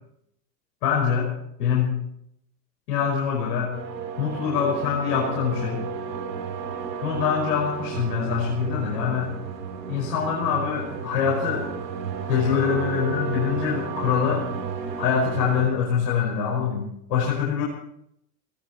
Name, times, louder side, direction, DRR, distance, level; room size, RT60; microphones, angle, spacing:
voice 1, 0.8-1.3 1.6-2.0 2.9-3.8 4.2-5.8 7.0-9.3 9.9-11.7 12.3-14.4 15.0-17.6, left 7 dB, 70° left, -2 dB, 5.4 m, -24 dB
sound 1, 3.7-15.7, right 6 dB, 80° right, 3.0 m, -32 dB
18.5 x 18.5 x 4.3 m, 0.76 s
hypercardioid pair, 85°, 49 cm